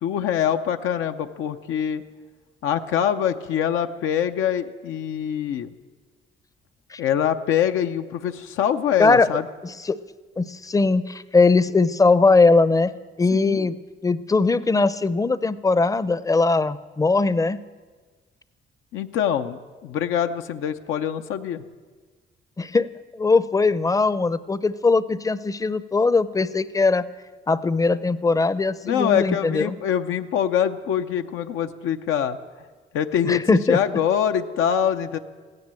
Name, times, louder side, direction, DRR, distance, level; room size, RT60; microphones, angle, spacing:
voice 1, 0.0-2.0 2.6-5.7 7.0-9.4 13.3-13.7 18.9-21.6 28.8-32.4 32.9-33.4 33.7-35.2, left 9 dB, 90° left, 7 dB, 0.6 m, -24 dB
voice 2, 9.6-10.0 10.4-12.9 13.2-13.8 14.0-17.6 22.6-27.0 27.5-29.8 33.2-33.8, left 3 dB, 15° left, 16 dB, 0.5 m, -20 dB
16.0 x 10.5 x 7.5 m, 1.4 s
cardioid pair, 90°, 20 cm